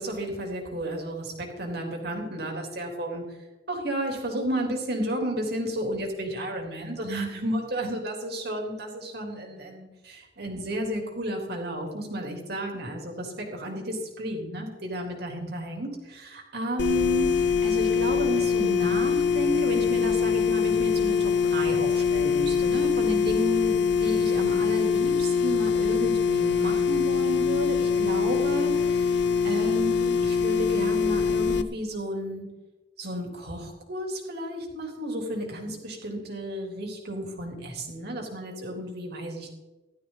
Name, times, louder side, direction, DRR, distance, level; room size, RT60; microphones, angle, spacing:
voice 1, 0.0-3.4 3.7-32.5 33.0-39.5, equal, 60° right, 1 dB, 3.7 m, -32 dB
sound 1, 16.8-31.6, left 6 dB, 65° left, 0.8 m, -24 dB
17.0 x 13.0 x 4.2 m, 1.1 s
head